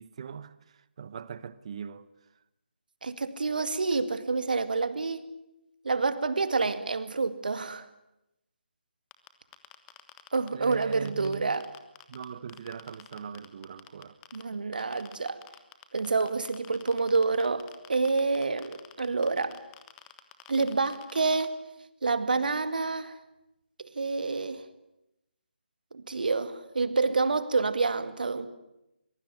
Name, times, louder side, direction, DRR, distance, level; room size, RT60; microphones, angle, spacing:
voice 1, 0.0-2.1 10.5-11.6 12.1-14.2, right 7 dB, 35° right, 1.0 m, -40 dB
voice 2, 3.0-5.3 5.8-7.9 10.3-11.6 14.3-15.4 15.9-19.6 20.5-21.6 22.0-23.1 23.8-24.6 25.9-28.5, right 4 dB, 55° right, 2.2 m, -28 dB
sound 1, 9.1-12.2 12.5-14.4 14.7-21.5, left 15 dB, 15° left, 1.3 m, -48 dB
24.0 x 22.5 x 9.4 m
figure-of-eight pair, 150°, 6 cm